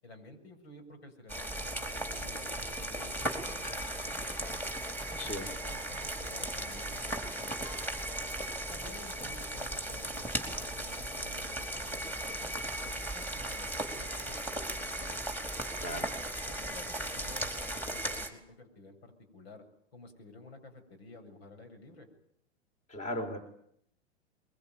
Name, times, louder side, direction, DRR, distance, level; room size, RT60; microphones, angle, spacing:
voice 1, 0.0-4.7 5.1-8.0 8.7-15.2 15.8-16.1 16.5-19.6 19.9-22.1, left 2 dB, 65° left, 7 dB, 7.5 m, -52 dB
sound 1, 1.3-18.3, right 1 dB, 5° left, 4.6 m, -37 dB
sound 2, 3.6-5.2 6.6-6.7 7.6-8.5, left 5 dB, 45° left, 5.5 m, -55 dB
voice 2, 5.2-5.5 15.8-16.1 22.9-23.4, left 1 dB, 20° left, 9 dB, 4.1 m, -37 dB
23.0 x 23.0 x 9.6 m, 0.69 s
hypercardioid pair, 105°, 34 cm